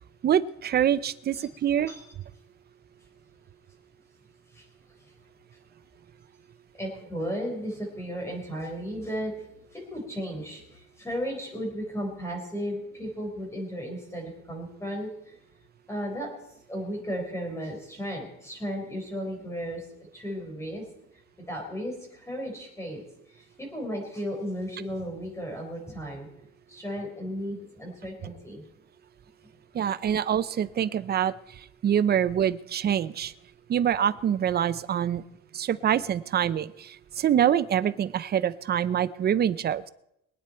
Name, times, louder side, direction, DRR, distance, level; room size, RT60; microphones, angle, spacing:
voice 1, 0.2-1.9 29.7-31.3 31.8-33.3 33.7-35.2 35.5-39.9, right 9 dB, 35° right, 14 dB, 0.6 m, -25 dB
voice 2, 6.7-9.3 9.7-15.4 15.9-16.3 16.7-19.9 20.1-20.9 21.1-28.7, equal, 10° left, 1 dB, 4.4 m, -35 dB
23.0 x 9.1 x 4.4 m, 0.79 s
cardioid pair, 145°, 29 cm